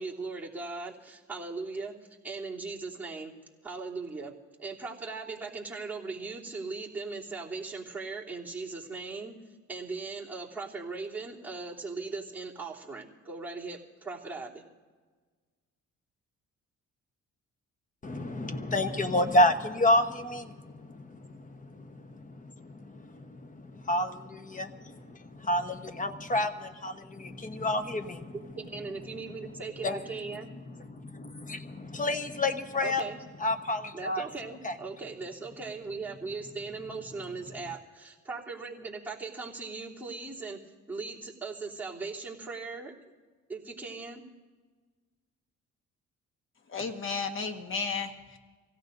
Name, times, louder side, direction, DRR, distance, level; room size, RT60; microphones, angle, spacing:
voice 1, 0.0-1.9 2.2-3.3 3.6-4.3 4.6-9.3 9.7-14.6 28.3-30.5 32.8-33.2 33.9-40.6 40.9-42.9 43.5-44.2, right 4 dB, 5° right, -8 dB, 3.2 m, -39 dB
voice 2, 18.0-28.3 29.8-30.0 30.7-33.1 33.4-34.2 34.6-34.7, left 1 dB, 25° left, 7 dB, 1.1 m, -30 dB
voice 3, 46.7-48.4, left 5 dB, 40° left, 3 dB, 1.5 m, -33 dB
25.5 x 17.0 x 2.7 m, 1.4 s
cardioid pair, 90°, 30 cm